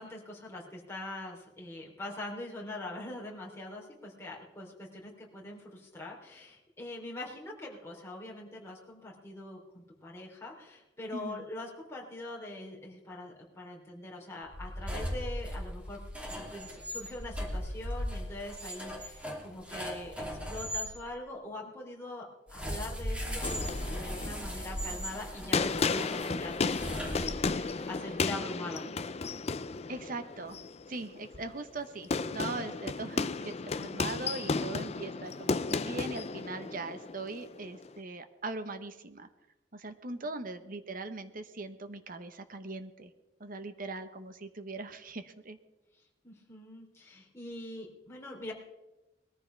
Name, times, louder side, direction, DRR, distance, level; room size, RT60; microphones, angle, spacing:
voice 1, 0.0-16.0 16.3-28.9 40.1-40.3 46.2-48.5, left 1 dB, 15° left, -3 dB, 3.5 m, -43 dB
voice 2, 11.1-11.5 27.5-27.9 29.9-30.6 30.9-39.3 39.7-43.1 43.4-45.6, right 3 dB, 50° right, 9 dB, 1.1 m, -40 dB
sound 1, 14.5-20.9 22.5-27.7, equal, 5° right, 2.8 m, -38 dB
sound 2, 23.4-38.0, left 4 dB, 35° left, 0.5 m, -34 dB
21.0 x 14.5 x 3.4 m, 1.0 s
head